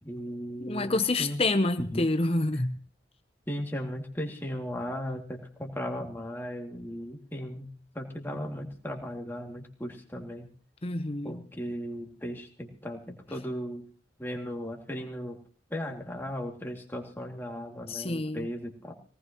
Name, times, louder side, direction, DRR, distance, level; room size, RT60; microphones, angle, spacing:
voice 1, 0.0-1.4 1.8-2.1 3.5-10.5 11.2-13.8 14.2-15.4 15.7-18.9, equal, 10° left, 0 dB, 2.4 m, -36 dB
voice 2, 0.6-2.7 10.8-11.4 17.9-18.5, left 2 dB, 30° left, 9 dB, 0.8 m, -28 dB
22.0 x 18.5 x 3.0 m, 0.39 s
head